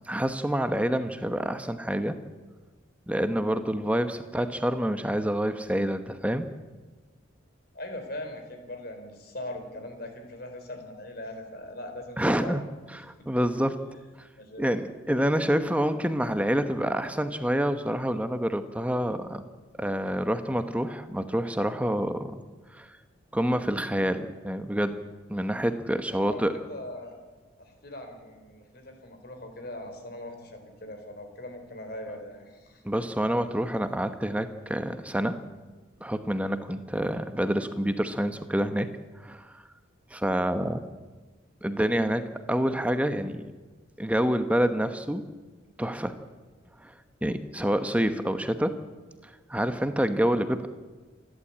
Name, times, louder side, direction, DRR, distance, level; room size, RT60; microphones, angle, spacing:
voice 1, 0.1-2.2 3.1-6.5 12.2-12.6 13.0-13.8 14.2-14.3 14.6-19.4 19.8-22.4 22.7-22.9 23.3-25.0 25.3-26.5 32.8-35.4 36.0-38.9 39.2-39.6 40.1-40.8 41.6-43.5 44.0-45.2 45.8-46.2 46.8-46.9 47.2-48.8 49.2-50.7, equal, 5° right, 9 dB, 1.0 m, -27 dB
voice 2, 7.7-12.6 14.4-14.7 26.1-27.2 27.6-32.8, left 1 dB, 50° left, 5 dB, 4.2 m, -40 dB
28.0 x 11.5 x 8.6 m, 1.3 s
head